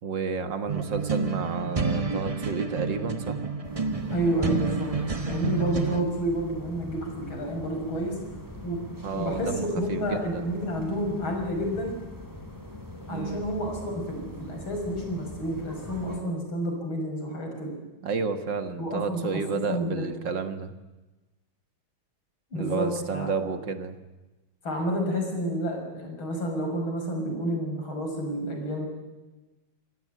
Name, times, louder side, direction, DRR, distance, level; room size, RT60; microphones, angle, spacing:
voice 1, 0.0-3.4 9.0-10.4 13.1-13.4 18.0-20.7 22.5-24.0, right 5 dB, 65° right, 9 dB, 2.2 m, -31 dB
sound 1, 0.7-6.0, right 4 dB, 25° right, 0.8 m, -29 dB
sound 2, 3.6-16.2, left 1 dB, 10° right, 3.9 m, -42 dB
voice 2, 4.1-4.9 5.3-8.2 8.6-8.8 9.1-11.9 13.1-17.8 18.8-20.1 22.5-23.3 24.6-28.9, equal, 75° left, 2 dB, 7.0 m, -30 dB
25.5 x 17.0 x 9.3 m, 1.1 s
omnidirectional pair, 2.2 m